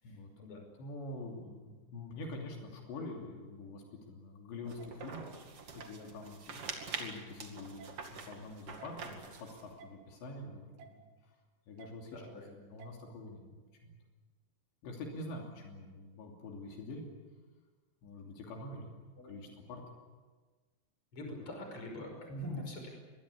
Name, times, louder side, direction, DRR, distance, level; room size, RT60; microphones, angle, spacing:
voice 1, 0.0-0.6 12.1-12.6 19.2-19.5 21.1-22.9, left 1 dB, 30° left, 3 dB, 6.1 m, -45 dB
voice 2, 0.8-5.3 5.7-11.4 11.7-12.2 12.7-14.0 14.8-17.1 18.0-18.9 19.2-19.8 22.3-22.5, left 2 dB, 75° left, 1 dB, 5.2 m, -46 dB
sound 1, 4.6-9.7, right 4 dB, 40° right, 2.6 m, -45 dB
sound 2, 4.8-4.9 5.8-5.9 6.8-7.0 7.8-7.9 8.8-9.0 9.8-9.9 10.8-11.0 11.8-11.9 12.8-13.0, right 7 dB, 80° right, 4.2 m, -53 dB
24.5 x 21.5 x 8.5 m, 1.4 s
omnidirectional pair, 5.1 m